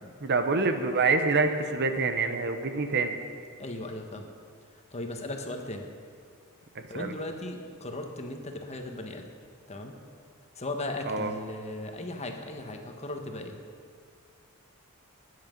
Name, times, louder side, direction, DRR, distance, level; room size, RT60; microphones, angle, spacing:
voice 1, 0.2-3.2 6.7-7.1 11.1-11.3, right 4 dB, 50° right, 7 dB, 0.9 m, -26 dB
voice 2, 3.6-4.3 4.9-5.9 6.9-9.3 9.7-9.9 10.5-13.6, left 2 dB, 30° left, 4 dB, 1.3 m, -37 dB
19.0 x 9.7 x 5.3 m, 2.2 s
head